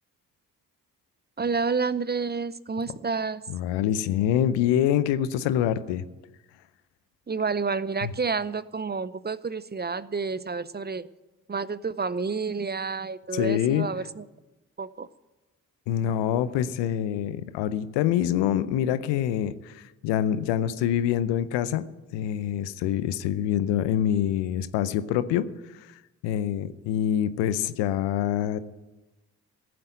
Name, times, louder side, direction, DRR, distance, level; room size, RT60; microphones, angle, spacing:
voice 1, 1.4-3.4 7.3-11.1 11.5-14.2 14.8-15.1, right 4 dB, 25° right, 17 dB, 0.6 m, -29 dB
voice 2, 3.5-6.0 8.0-8.1 13.3-13.9 15.9-21.9 22.1-25.5 25.7-25.9 26.2-28.6, left 10 dB, 75° left, 15 dB, 0.7 m, -25 dB
15.0 x 7.8 x 9.2 m, 1.1 s
hypercardioid pair, 40°, 43 cm